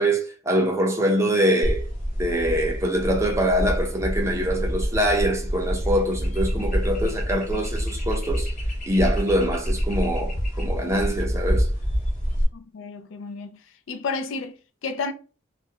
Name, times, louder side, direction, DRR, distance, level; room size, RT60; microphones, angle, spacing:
voice 1, 0.0-1.8 2.2-8.5 8.9-11.7, equal, 15° right, 0.5 m, -24 dB
sound 1, 1.6-12.4, equal, 40° left, 0.7 m, -27 dB
voice 2, 12.5-13.6 13.9-15.1, left 4 dB, 80° left, 0.4 m, -31 dB
2.4 x 2.1 x 2.8 m
head